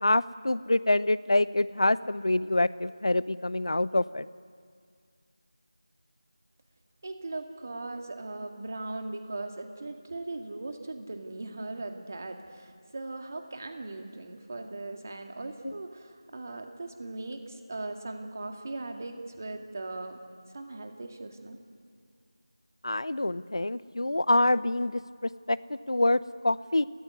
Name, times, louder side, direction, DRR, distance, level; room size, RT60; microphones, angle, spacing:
voice 1, 0.0-4.3 15.6-15.7 22.8-26.9, left 2 dB, 60° left, 18 dB, 0.7 m, -26 dB
voice 2, 7.0-20.2 20.5-21.6, right 2 dB, 30° right, 4 dB, 2.1 m, -39 dB
30.0 x 14.0 x 9.7 m, 2.1 s
figure-of-eight pair, 175°, 3 cm